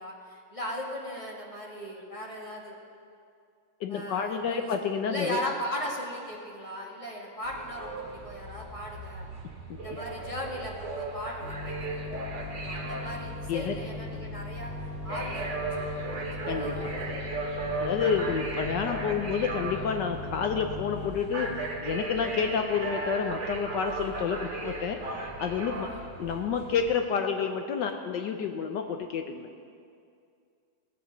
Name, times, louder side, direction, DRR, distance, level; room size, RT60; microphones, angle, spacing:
voice 1, 0.0-2.8 3.9-4.7 5.0-9.3 9.8-14.7 15.0-17.2 25.9-26.0, left 1 dB, 15° left, -3 dB, 1.7 m, -38 dB
voice 2, 3.8-5.4 13.5-13.8 16.5-16.9 17.8-29.5, left 6 dB, 70° left, 5 dB, 1.2 m, -29 dB
sound 1, 7.4-26.9, right 2 dB, 40° right, 1.5 m, -37 dB
sound 2, 11.4-21.7, left 3 dB, 35° left, 2.2 m, -39 dB
18.0 x 7.4 x 5.8 m, 2.4 s
omnidirectional pair, 2.2 m